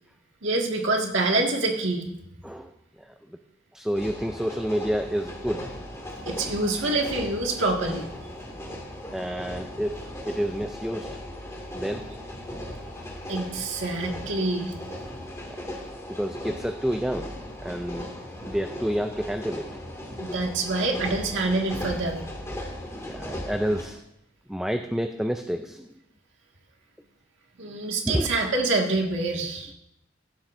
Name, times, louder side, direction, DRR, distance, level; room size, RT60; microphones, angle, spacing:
voice 1, 0.4-2.1 6.3-8.1 13.3-14.8 20.2-22.2 27.6-29.7, right 2 dB, 70° right, 1 dB, 1.9 m, -26 dB
voice 2, 3.7-5.7 9.1-11.1 11.7-12.0 15.4-15.6 16.1-17.3 17.6-18.1 18.4-19.7 22.9-24.0 24.5-25.9 28.0-28.3, equal, 5° right, 6 dB, 0.4 m, -29 dB
sound 1, 3.9-23.8, left 1 dB, 15° left, 2.2 m, -37 dB
16.5 x 11.5 x 2.6 m, 0.80 s
head